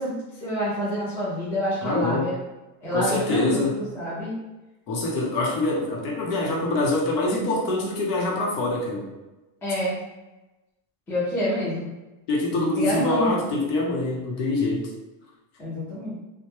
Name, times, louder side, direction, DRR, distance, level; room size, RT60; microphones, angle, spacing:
voice 1, 0.0-2.4 2.8-4.3 9.6-10.0 11.1-11.9 12.5-13.3 15.6-16.2, equal, 5° left, -9 dB, 0.4 m, -27 dB
voice 2, 1.8-2.3 2.9-3.8 4.9-9.1 12.3-14.9, left 2 dB, 75° left, -2 dB, 0.9 m, -25 dB
2.1 x 2.1 x 3.0 m, 1.1 s
cardioid pair, 175°, 38 cm